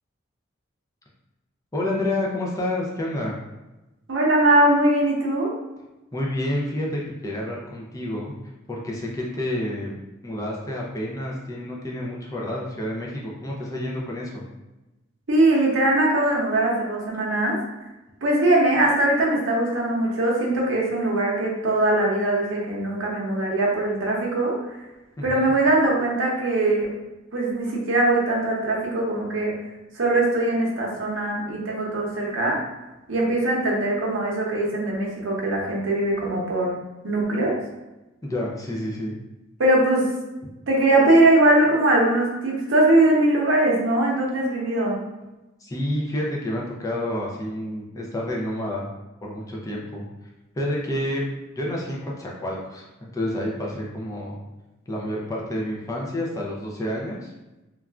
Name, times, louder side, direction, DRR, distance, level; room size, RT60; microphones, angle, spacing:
voice 1, 1.7-3.4 6.1-8.3 8.7-9.9 10.2-14.4 25.2-25.5 38.2-39.2 45.6-48.9 49.2-50.1 50.6-51.3 51.6-54.4 54.9-57.3, left 1 dB, 15° left, -3 dB, 0.4 m, -29 dB
voice 2, 4.1-5.5 15.3-17.6 18.2-24.6 25.2-26.9 27.3-29.5 29.9-32.6 33.1-36.7 37.0-37.5 39.6-40.1 40.7-45.0, right 1 dB, 75° right, -3 dB, 0.7 m, -21 dB
3.2 x 2.4 x 2.3 m, 1.0 s
head